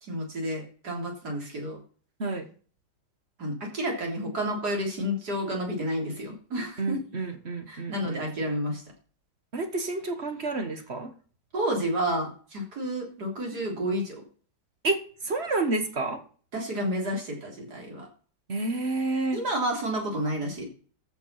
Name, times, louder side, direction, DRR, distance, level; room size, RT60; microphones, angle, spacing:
voice 1, 0.0-1.8 3.4-7.0 7.7-8.8 11.5-14.2 16.5-18.1 19.3-20.7, equal, 60° right, 0 dB, 4.1 m, -30 dB
voice 2, 6.8-8.3 9.5-11.1 14.8-15.0 15.2-16.2 18.5-19.4, right 3 dB, 40° right, 8 dB, 1.5 m, -29 dB
14.0 x 6.0 x 5.8 m, 0.42 s
omnidirectional pair, 1.9 m